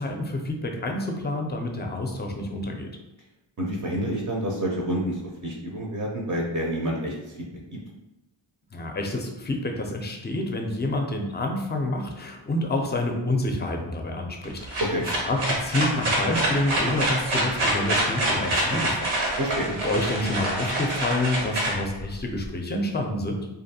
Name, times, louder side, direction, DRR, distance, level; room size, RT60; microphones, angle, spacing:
voice 1, 0.0-2.9 8.7-14.8 15.2-19.4 19.8-23.4, left 1 dB, 25° left, 2 dB, 0.4 m, -28 dB
voice 2, 3.6-7.4 7.7-7.8 14.9-15.0 19.4-19.7, equal, 40° right, -2 dB, 0.5 m, -28 dB
sound 1, 14.4-22.5, right 1 dB, 90° right, 0.8 m, -26 dB
2.5 x 2.5 x 2.7 m, 0.97 s
wide cardioid pair, 75°, 48 cm